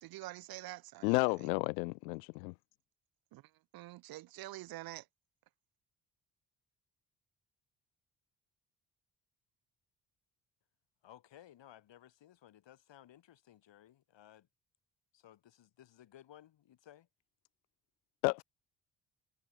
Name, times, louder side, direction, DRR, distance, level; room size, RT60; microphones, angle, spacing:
voice 1, 0.0-1.5 3.3-3.4 3.7-5.1, right 16 dB, 50° right, 0.5 m, -47 dB
voice 2, 1.0-2.5 18.2-18.4, left 29 dB, 75° left, 0.6 m, -32 dB
voice 3, 11.0-14.5 15.1-17.1, left 11 dB, 60° left, 7.6 m, -59 dB
figure-of-eight pair, 40°, 49 cm